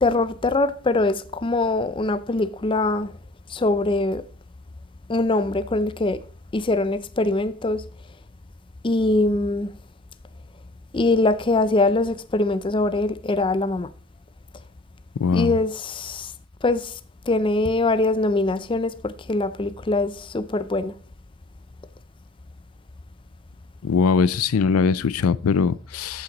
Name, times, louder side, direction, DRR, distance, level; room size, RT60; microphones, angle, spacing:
voice 1, 0.0-3.1 3.5-4.2 5.1-6.2 6.5-7.8 8.8-9.7 10.9-13.9 15.3-16.3 16.6-17.0 17.3-20.9, left 2 dB, 25° left, 0.4 m, -22 dB
voice 2, 15.2-15.6 23.8-26.2, left 5 dB, 85° left, 0.4 m, -21 dB
13.5 x 5.9 x 3.9 m
head